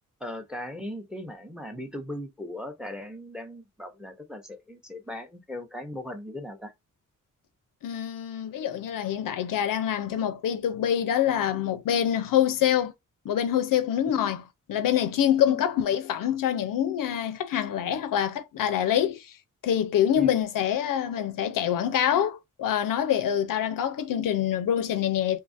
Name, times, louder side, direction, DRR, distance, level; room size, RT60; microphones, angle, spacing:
voice 1, 0.2-6.7 15.5-15.6 20.1-20.5, left 1 dB, ahead, 0.6 m, -38 dB
voice 2, 7.8-12.9 13.3-14.4 14.7-19.2 19.6-25.4, left 10 dB, 90° left, 0.5 m, -25 dB
2.7 x 2.3 x 2.5 m
cardioid pair, 95°, 32 cm